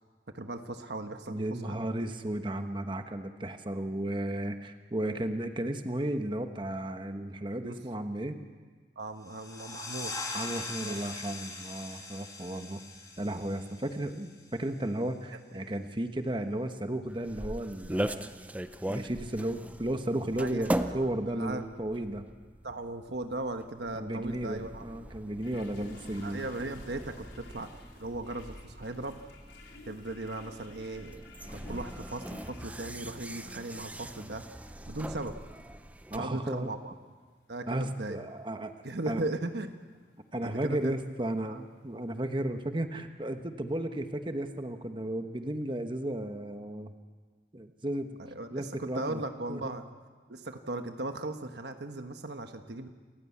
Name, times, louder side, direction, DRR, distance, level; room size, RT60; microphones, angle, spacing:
voice 1, 0.3-1.8 7.6-7.8 9.0-10.2 10.8-11.0 15.6-15.7 20.4-21.6 22.6-24.8 26.2-27.7 28.0-29.1 29.9-34.4 34.9-35.3 36.1-36.9 37.5-38.2 38.8-39.8 40.4-40.9 41.4-41.6 48.2-49.8 50.3-53.0, right 2 dB, 70° right, 7 dB, 1.3 m, -38 dB
voice 2, 1.3-8.4 10.3-12.8 13.2-18.3 18.9-22.3 23.9-26.4 36.1-36.7 37.7-38.7 39.1-39.3 40.3-46.9 47.5-48.1 48.5-49.2 49.5-49.7, right 1 dB, 30° right, 7 dB, 1.1 m, -34 dB
sound 1, 9.2-14.6, left 3 dB, 20° left, 2.9 m, -41 dB
sound 2, 17.1-36.2, right 1 dB, 10° right, 0.6 m, -40 dB
sound 3, 25.4-42.5, left 2 dB, 80° left, 4.6 m, -56 dB
28.5 x 15.5 x 8.6 m, 1.4 s
head